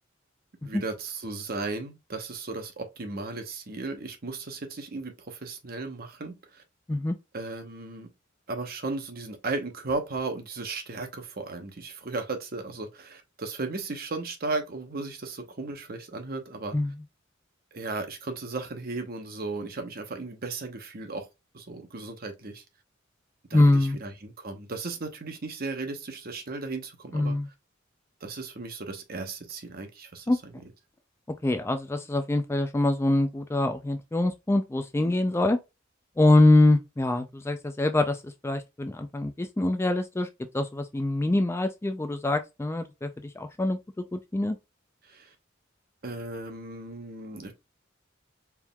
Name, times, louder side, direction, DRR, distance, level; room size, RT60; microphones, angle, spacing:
voice 1, 0.6-6.6 7.3-8.1 8.5-16.8 17.7-21.3 21.5-22.6 23.5-27.4 28.2-30.3 45.0-45.3 46.0-47.5, right 3 dB, 50° right, 0.9 m, -35 dB
voice 2, 23.5-24.0 27.1-27.5 30.3-30.4 31.4-35.6 36.2-40.3 40.5-43.8 44.1-44.6, left 2 dB, 15° left, 0.3 m, -24 dB
4.5 x 3.6 x 2.2 m
head